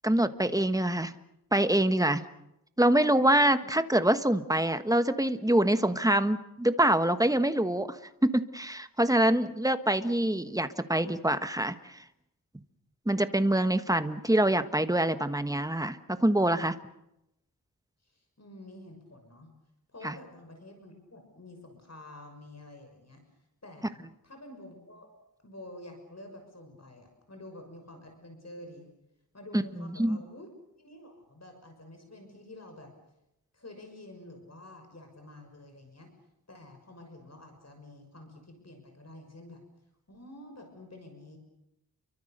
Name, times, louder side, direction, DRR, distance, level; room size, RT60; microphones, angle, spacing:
voice 1, 0.0-1.1 1.5-2.2 2.8-8.0 8.2-12.0 13.1-16.8 20.0-20.1 30.0-30.2, right 1 dB, 10° right, 10 dB, 1.4 m, -25 dB
voice 2, 18.0-19.5 19.9-23.2 23.6-25.1 25.4-28.9 29.3-30.5 30.8-32.9 33.5-36.1 36.5-39.6 40.1-41.4, left 1 dB, 45° left, 4 dB, 6.3 m, -49 dB
30.0 x 24.0 x 6.7 m, 0.84 s
wide cardioid pair, 85°, 36 cm